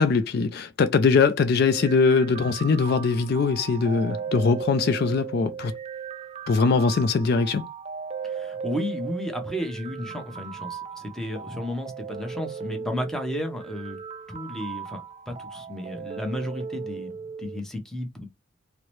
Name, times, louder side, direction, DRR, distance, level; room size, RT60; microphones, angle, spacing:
voice 1, 0.0-5.7 6.5-7.6, left 4 dB, 55° left, 0.4 m, -21 dB
sound 1, 1.6-17.6, right 6 dB, 30° right, 0.3 m, -37 dB
voice 2, 8.2-14.0 14.3-18.3, left 1 dB, 5° left, 0.7 m, -33 dB
4.6 x 2.1 x 3.0 m
head